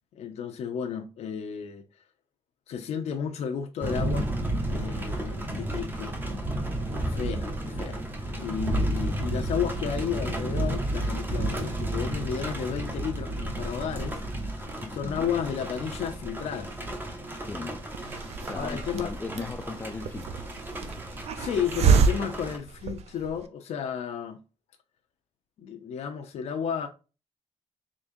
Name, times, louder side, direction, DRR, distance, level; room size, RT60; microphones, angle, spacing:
voice 1, 0.2-1.8 2.7-4.3 4.7-6.2 7.0-14.2 14.6-14.7 14.9-16.7 18.5-19.5 21.3-24.4 25.6-26.9, left 7 dB, 75° left, 0.5 m, -33 dB
sound 1, 3.8-22.6, right 1 dB, 20° right, 0.7 m, -32 dB
voice 2, 14.8-15.3 17.5-17.8 18.4-20.5, left 4 dB, 15° left, 0.4 m, -38 dB
Hiss, 17.9-23.4, right 6 dB, 70° right, 0.4 m, -28 dB
3.6 x 3.5 x 2.5 m
wide cardioid pair, 180°, 11 cm